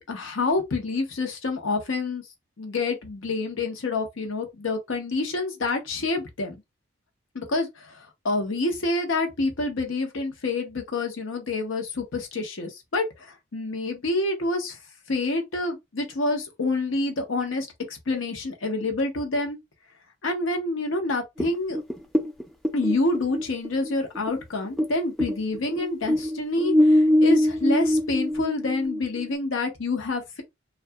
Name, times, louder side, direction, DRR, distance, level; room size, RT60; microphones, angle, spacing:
voice 1, 0.1-2.2 2.6-6.5 7.3-14.8 15.1-19.6 20.2-21.8 22.7-30.4, left 2 dB, 85° left, 0.8 m, -27 dB
sound 1, 21.4-24.9 25.2-29.3, left 1 dB, ahead, 0.3 m, -22 dB
2.7 x 2.3 x 2.3 m
head